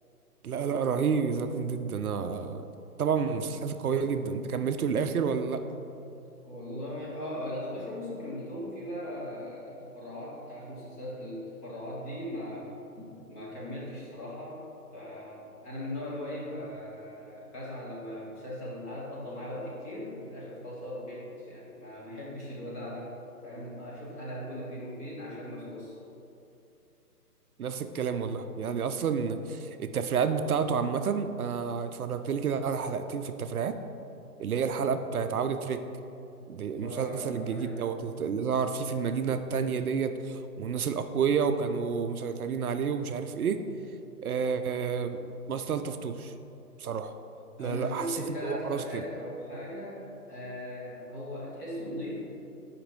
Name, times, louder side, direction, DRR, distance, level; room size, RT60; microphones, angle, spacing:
voice 1, 0.4-2.6 3.0-5.6 27.6-33.8 34.4-35.8 36.5-43.6 44.2-46.3 46.8-47.1 47.6-48.2 48.4-49.0, right 6 dB, 65° right, 9 dB, 0.6 m, -30 dB
voice 2, 6.4-12.7 13.0-14.6 14.9-23.1 23.4-26.0 36.7-37.9 47.6-52.3, left 1 dB, 10° left, -8 dB, 0.6 m, -39 dB
5.7 x 5.2 x 5.3 m, 2.7 s
figure-of-eight pair, 135°, 47 cm